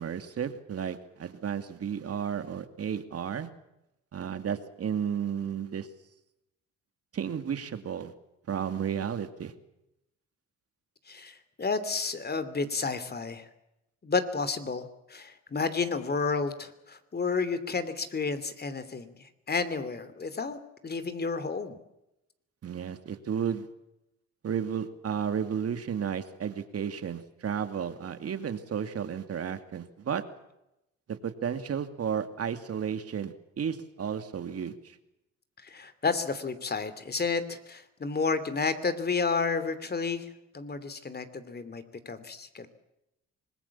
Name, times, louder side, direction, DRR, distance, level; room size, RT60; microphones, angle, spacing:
voice 1, 0.0-3.5 4.1-5.9 7.1-8.1 8.5-9.5 22.6-23.7 24.4-30.2 31.1-35.0, right 8 dB, 50° right, 9 dB, 2.5 m, -33 dB
voice 2, 11.1-13.5 14.0-21.8 35.6-42.7, left 4 dB, 35° left, 12 dB, 2.9 m, -31 dB
25.5 x 20.5 x 7.3 m, 0.88 s
cardioid pair, 90°, 30 cm